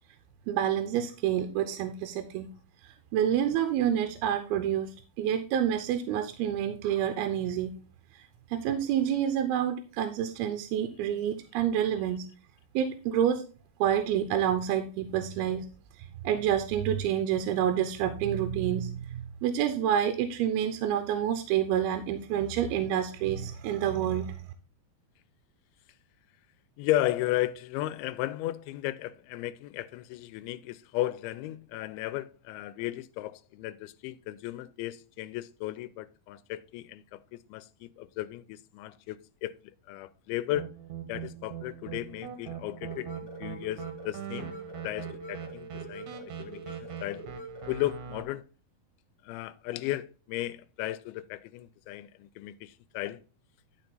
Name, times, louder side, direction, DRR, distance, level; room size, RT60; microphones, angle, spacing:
voice 1, 0.5-2.5 2.8-7.8 8.1-8.2 8.5-12.3 12.7-13.5 13.8-15.7 16.2-24.4, right 10 dB, 85° right, 2.5 m, -28 dB
voice 2, 26.8-37.2 37.5-39.2 39.4-39.5 39.9-40.7 41.1-44.5 44.8-47.2 47.7-48.4 49.2-53.2, left 15 dB, 85° left, 2.4 m, -35 dB
sound 1, 40.5-48.2, right 9 dB, 65° right, 2.0 m, -41 dB
sound 2, 42.8-47.8, right 1 dB, 50° left, 1.2 m, -44 dB
11.5 x 4.5 x 3.9 m
omnidirectional pair, 4.5 m